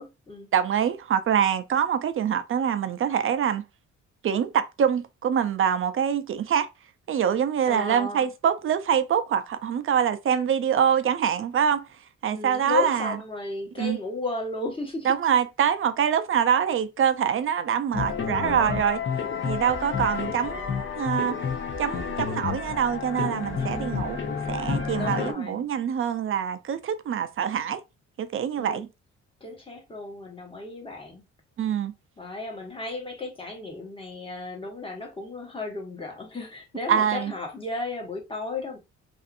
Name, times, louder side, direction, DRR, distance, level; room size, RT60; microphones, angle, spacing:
voice 1, 0.0-0.5 7.7-8.2 12.3-15.1 23.6-24.1 25.0-25.7 28.6-28.9 29.4-31.2 32.2-38.8, left 3 dB, 15° left, 1.1 m, -34 dB
voice 2, 0.5-3.6 4.2-6.7 7.1-11.9 12.2-13.2 13.8-14.0 15.0-19.0 19.4-21.4 21.8-24.2 24.5-27.8 28.2-28.9 31.6-31.9 36.9-37.3, right 8 dB, 45° right, 0.5 m, -25 dB
sound 1, 17.9-25.3, left 6 dB, 40° left, 0.6 m, -30 dB
2.6 x 2.5 x 2.4 m
cardioid pair, 90°, 30 cm